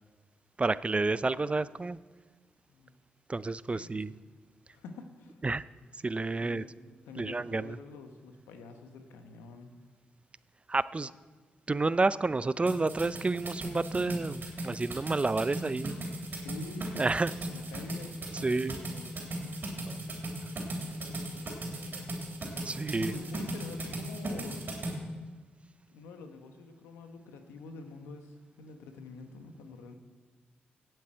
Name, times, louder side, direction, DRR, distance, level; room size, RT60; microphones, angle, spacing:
voice 1, 0.6-2.0 3.3-4.1 5.4-5.6 6.0-6.6 7.2-7.8 10.7-11.1 11.7-16.0 17.0-17.3 18.4-18.8 19.9-20.0 22.6-23.1, right 3 dB, 30° right, 17 dB, 0.4 m, -30 dB
voice 2, 3.7-4.2 4.7-5.4 6.4-6.7 7.0-9.7 16.4-16.9 17.5-19.6 21.0-22.1 22.9-24.6 25.9-29.9, left 4 dB, 90° left, 6 dB, 1.1 m, -47 dB
sound 1, 12.7-24.9, right 1 dB, 55° right, 3.3 m, -37 dB
17.0 x 8.0 x 4.5 m, 1.3 s
supercardioid pair, 45°, 4 cm